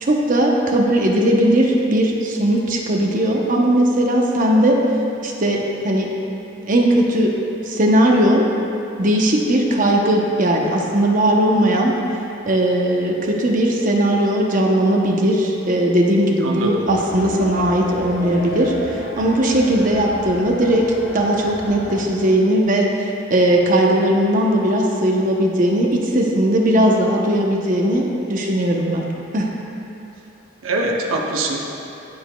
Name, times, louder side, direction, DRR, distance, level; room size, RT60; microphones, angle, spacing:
voice 1, 0.0-4.8 5.2-6.1 6.6-7.3 7.7-8.4 9.0-12.0 12.5-20.9 21.1-29.1 29.3-29.5, right 1 dB, 40° right, 0 dB, 0.8 m, -18 dB
voice 2, 16.4-16.8 30.6-31.7, right 2 dB, 90° right, 0 dB, 0.7 m, -23 dB
sound 1, 16.9-22.1, left 2 dB, 70° left, 1.1 m, -33 dB
14.5 x 5.0 x 2.3 m, 2.8 s
head